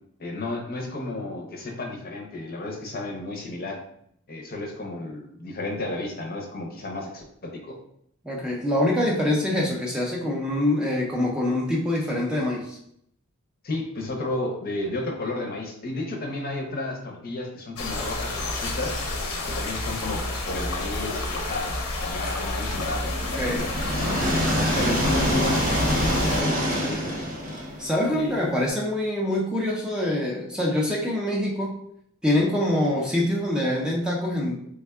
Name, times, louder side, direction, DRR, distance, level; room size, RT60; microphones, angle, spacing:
voice 1, 0.2-3.8 4.3-7.8 13.6-19.1 19.5-23.1 23.9-24.5 24.8-27.4 28.1-28.4, left 2 dB, 40° left, 1 dB, 0.6 m, -33 dB
voice 2, 8.2-12.8 23.3-23.7 27.8-31.8 32.2-34.6, left 1 dB, 5° right, -4 dB, 0.4 m, -25 dB
sound 1, 17.8-26.4, left 2 dB, 85° left, 0.8 m, -30 dB
sound 2, 22.7-28.6, equal, 35° right, 0.7 m, -26 dB
3.4 x 2.2 x 3.4 m, 0.71 s
head